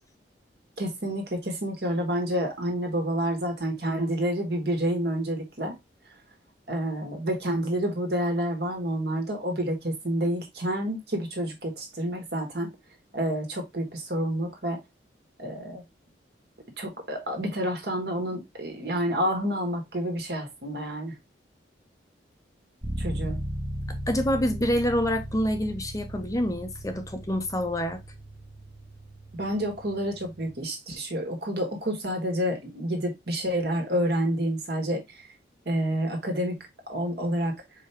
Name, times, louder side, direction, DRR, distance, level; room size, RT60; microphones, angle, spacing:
voice 1, 0.8-5.8 6.7-12.7 13.1-14.8 15.4-15.8 16.8-21.1 23.0-23.4 29.3-35.3 35.7-36.6 36.9-37.6, equal, 60° right, 1.6 m, -29 dB
sound 1, 22.8-30.6, equal, 25° right, 0.9 m, -37 dB
voice 2, 23.9-28.0, equal, 20° left, 0.6 m, -27 dB
4.7 x 3.5 x 2.9 m
head